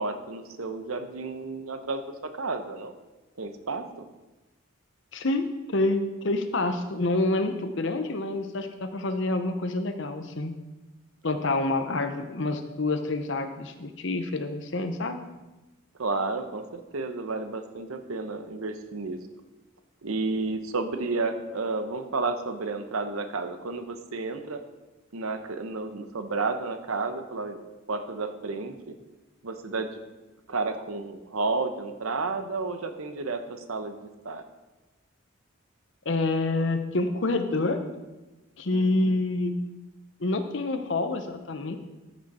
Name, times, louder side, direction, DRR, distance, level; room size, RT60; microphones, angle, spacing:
voice 1, 0.0-2.0 2.4-2.9 3.4-3.9 16.0-19.2 20.0-24.6 25.1-27.6 27.9-28.9 29.4-30.0 30.5-34.4 38.7-39.2, right 3 dB, 85° right, 8 dB, 0.9 m, -31 dB
voice 2, 5.1-10.5 11.2-15.2 36.1-37.8 38.6-39.6 40.2-41.8, left 2 dB, 60° left, 8 dB, 0.8 m, -27 dB
13.5 x 6.3 x 4.3 m, 1.1 s
head